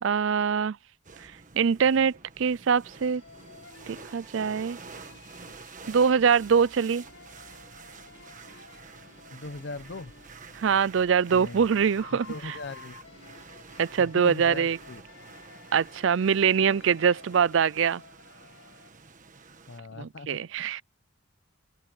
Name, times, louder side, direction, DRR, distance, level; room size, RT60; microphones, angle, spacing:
voice 1, 0.0-0.8 1.6-3.2 3.9-4.8 5.9-7.0 10.6-12.5 13.8-14.8 15.7-18.0 20.0-20.8, right 6 dB, 65° right, 0.4 m, -23 dB
sound 1, 1.0-19.8, right 4 dB, 40° right, 1.6 m, -49 dB
sound 2, 2.9-18.9, left 4 dB, 75° left, 4.8 m, -53 dB
voice 2, 9.3-10.1 11.3-11.7 12.1-13.0 14.0-15.0 19.7-20.4, left 3 dB, 60° left, 0.8 m, -40 dB
open air
head